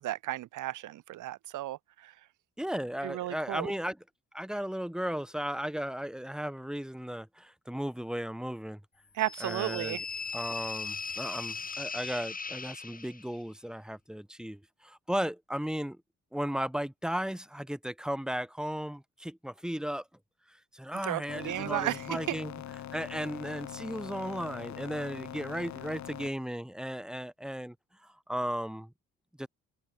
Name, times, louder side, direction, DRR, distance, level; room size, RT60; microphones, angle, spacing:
voice 1, 0.0-2.1 3.0-3.7 9.2-10.0 21.0-22.0 22.3-22.4, right 15 dB, 80° right, 1.7 m, -34 dB
voice 2, 2.6-4.0 4.3-8.8 9.4-10.0 10.3-16.0 16.3-20.1 20.5-22.6 22.9-27.8 28.0-28.9 29.4-29.5, equal, ahead, 4.5 m, -35 dB
sound 1, 9.2-13.4, left 4 dB, 30° left, 3.0 m, -38 dB
sound 2, 21.3-26.3, left 11 dB, 65° left, 3.0 m, -42 dB
cardioid pair, 90°, 30 cm